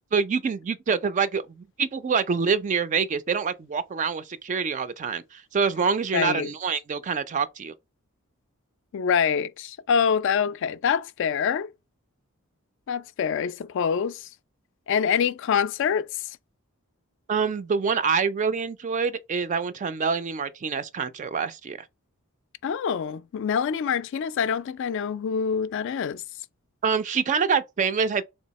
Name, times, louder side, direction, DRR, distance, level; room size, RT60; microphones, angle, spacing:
voice 1, 0.1-7.7 17.3-21.8 26.8-28.2, right 5 dB, 35° right, 0.3 m, -26 dB
voice 2, 6.1-6.5 8.9-11.7 12.9-14.3 14.9-16.3 22.6-26.2, left 7 dB, 60° left, 0.3 m, -25 dB
3.4 x 2.7 x 4.1 m
head